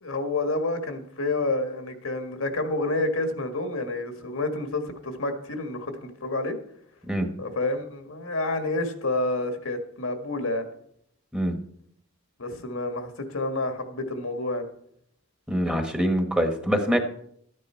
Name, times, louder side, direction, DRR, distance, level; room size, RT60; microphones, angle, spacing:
voice 1, 0.0-6.6 7.4-10.6 12.4-14.7, left 2 dB, 75° left, 5 dB, 1.7 m, -29 dB
voice 2, 15.5-17.0, equal, 5° right, 4 dB, 1.3 m, -24 dB
13.0 x 9.7 x 4.5 m, 0.68 s
head